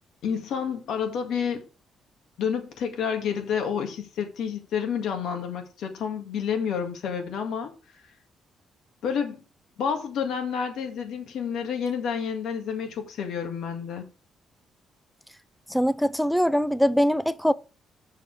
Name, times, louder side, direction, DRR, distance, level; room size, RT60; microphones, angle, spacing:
voice 1, 0.2-1.7 2.4-7.7 9.0-9.4 9.8-14.1, left 7 dB, 75° left, 1.9 m, -29 dB
voice 2, 15.7-17.5, equal, ahead, 0.4 m, -22 dB
6.9 x 6.9 x 4.8 m
cardioid pair, 90°, 0 cm